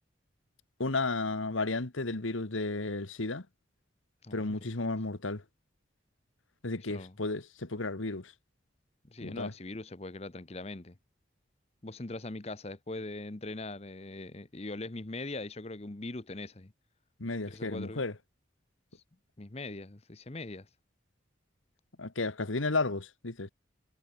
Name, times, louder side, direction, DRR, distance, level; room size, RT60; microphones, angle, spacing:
voice 1, 0.8-3.5 4.3-5.4 6.6-8.3 9.2-9.5 17.2-18.1 22.0-23.5, left 3 dB, 85° left, 1.6 m, -33 dB
voice 2, 4.2-4.9 6.8-7.2 9.0-11.0 11.8-16.7 17.5-18.1 18.9-19.0 19.4-20.7, left 2 dB, 30° left, 0.9 m, -41 dB
head